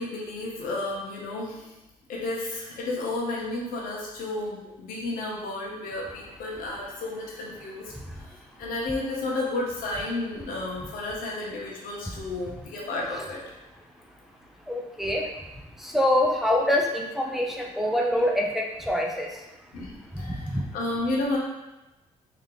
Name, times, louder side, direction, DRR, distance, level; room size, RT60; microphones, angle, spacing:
voice 1, 0.0-1.7 2.1-7.9 8.6-13.4 19.7-21.4, left 2 dB, 85° left, -3 dB, 0.9 m, -32 dB
voice 2, 7.9-8.6 13.1-13.3 14.6-19.5 20.0-20.7, left 1 dB, ahead, 0 dB, 0.5 m, -26 dB
3.2 x 2.9 x 3.8 m, 1.0 s
cardioid pair, 85°, 14 cm